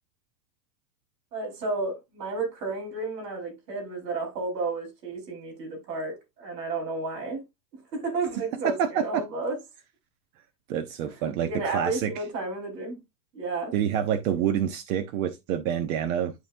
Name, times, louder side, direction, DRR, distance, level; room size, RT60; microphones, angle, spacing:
voice 1, 1.3-7.4 7.7-9.6 11.4-13.0 13.3-13.7, right 3 dB, 85° right, 4.6 m, -32 dB
voice 2, 8.6-9.2 10.7-12.1 13.7-16.3, right 9 dB, 60° right, 1.0 m, -27 dB
11.5 x 3.8 x 2.6 m
supercardioid pair, 150°, 47 cm